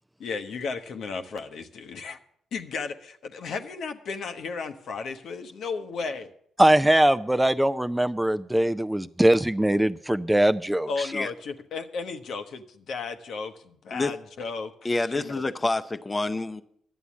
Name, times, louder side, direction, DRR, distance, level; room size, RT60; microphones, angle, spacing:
voice 1, 0.2-2.2 2.5-6.3 10.9-14.7 15.1-15.4, left 4 dB, 65° left, 7 dB, 0.9 m, -34 dB
voice 2, 6.6-11.1, right 1 dB, 10° right, 12 dB, 0.4 m, -21 dB
voice 3, 14.8-16.6, left 2 dB, 25° left, 9 dB, 0.7 m, -27 dB
11.5 x 8.1 x 7.2 m, 0.68 s
hypercardioid pair, 45°, 0 cm